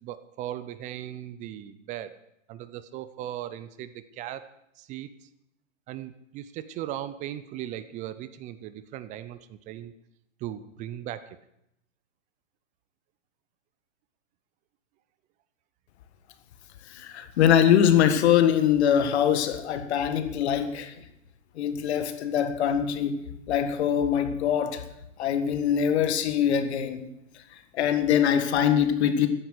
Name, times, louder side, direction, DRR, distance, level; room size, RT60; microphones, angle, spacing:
voice 1, 0.0-2.1 2.5-4.4 4.8-5.3 5.9-9.9 10.4-11.4, right 12 dB, 20° right, 14 dB, 0.5 m, -38 dB
voice 2, 16.9-20.9 21.6-23.2 23.5-24.9 25.2-27.1 27.5-29.3, left 9 dB, 55° left, 9 dB, 1.8 m, -23 dB
14.5 x 10.0 x 6.5 m, 0.82 s
hypercardioid pair, 120°, 39 cm